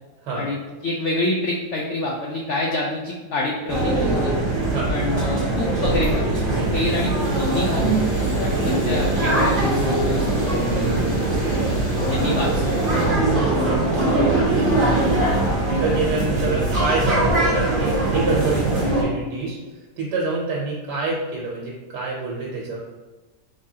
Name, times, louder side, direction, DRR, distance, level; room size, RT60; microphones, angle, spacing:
voice 1, 0.4-4.4 4.9-6.4 6.7-8.0 8.4-10.3 10.5-11.5 12.0-12.7, left 2 dB, 80° left, -2 dB, 0.6 m, -27 dB
sound 1, 3.7-19.0, right 2 dB, 40° right, 0.8 m, -21 dB
sound 2, 7.2-13.1, equal, 30° left, 1.0 m, -40 dB
voice 2, 12.2-12.7 13.7-15.3 15.7-19.6 20.0-22.8, right 3 dB, 80° right, -4 dB, 1.3 m, -27 dB
3.3 x 3.3 x 2.7 m, 1.3 s
omnidirectional pair, 1.8 m